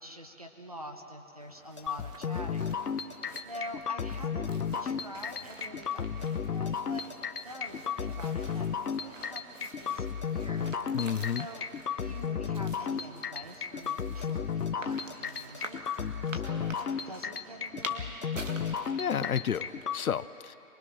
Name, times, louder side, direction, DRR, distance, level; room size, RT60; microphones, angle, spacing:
voice 1, 0.0-2.8 3.4-4.5 4.8-7.0 7.4-8.7 9.0-10.7 11.4-11.7 12.0-15.8 16.3-18.1, equal, 25° right, 3 dB, 0.9 m, -46 dB
sound 1, 1.4-20.0, right 2 dB, 55° right, 2.0 m, -48 dB
sound 2, 1.8-7.6 8.0-10.3 10.7-10.8 11.1-11.6 12.0-15.2 15.5-15.7 16.0-16.1 16.4-16.5 16.9-19.6 20.0-20.1, left 3 dB, 20° left, 1.0 m, -51 dB
sound 3, 1.9-20.0, left 7 dB, 85° left, 1.0 m, -33 dB
voice 2, 10.9-11.5 19.0-20.6, left 8 dB, 70° left, 16 dB, 0.6 m, -31 dB
24.5 x 21.0 x 6.1 m, 3.0 s
hypercardioid pair, 170°, 45 cm